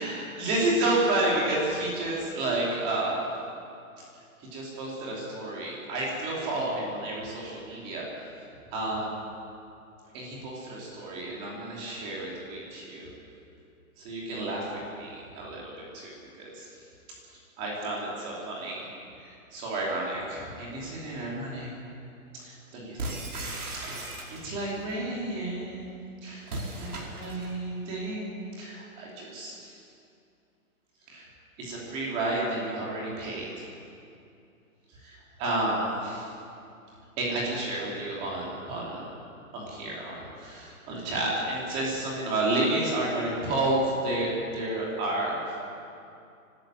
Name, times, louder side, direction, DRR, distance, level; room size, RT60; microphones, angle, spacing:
voice 1, 0.0-3.2 4.0-4.1 4.4-8.3 8.7-9.2 10.1-13.1 14.0-16.1 16.4-16.7 17.3-18.9 19.2-21.7 22.3-23.5 23.7-28.3 28.6-29.8 31.1-31.3 31.6-33.5 34.9-36.3 37.2-39.0 39.5-45.8, right 2 dB, 15° right, -4 dB, 2.9 m, -31 dB
sound 1, 23.0-24.7 26.4-27.6, right 1 dB, 90° right, 5.0 m, -36 dB
23.0 x 13.0 x 9.1 m, 2.6 s
hypercardioid pair, 180°, 44 cm